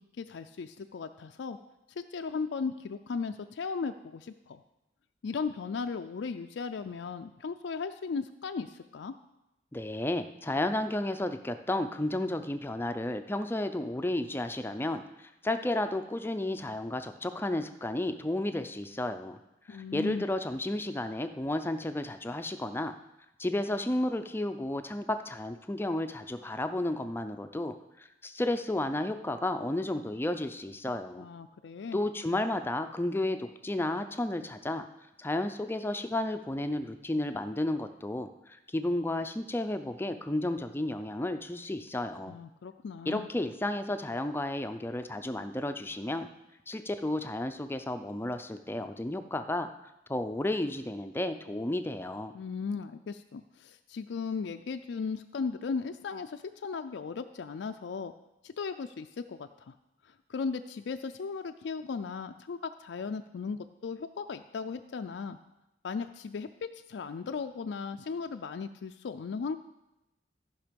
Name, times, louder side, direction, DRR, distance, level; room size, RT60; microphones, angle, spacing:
voice 1, 0.2-1.6 2.0-4.6 5.2-9.1 19.7-20.3 31.2-32.0 42.3-43.3 52.3-58.1 58.4-59.7 60.3-65.4 65.8-69.6, left 5 dB, 70° left, 7 dB, 0.4 m, -36 dB
voice 2, 9.7-19.4 19.7-22.9 23.4-31.3 31.9-34.9 35.2-42.4 43.1-46.3 46.7-49.7 50.1-52.3, left 1 dB, 10° left, 8 dB, 0.5 m, -32 dB
14.0 x 5.4 x 5.2 m, 0.91 s
head